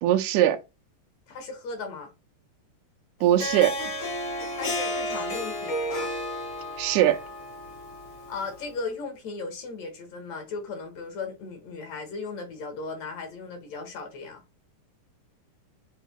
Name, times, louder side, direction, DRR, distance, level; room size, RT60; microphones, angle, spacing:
voice 1, 0.0-0.6 3.2-3.7 6.8-7.2, right 12 dB, 80° right, 1.9 m, -21 dB
voice 2, 1.3-2.1 4.5-6.1 8.3-14.4, left 4 dB, 65° left, 2.2 m, -36 dB
Harp, 3.2-8.7, left 1 dB, 45° left, 1.8 m, -32 dB
7.1 x 3.2 x 2.2 m
omnidirectional pair, 3.7 m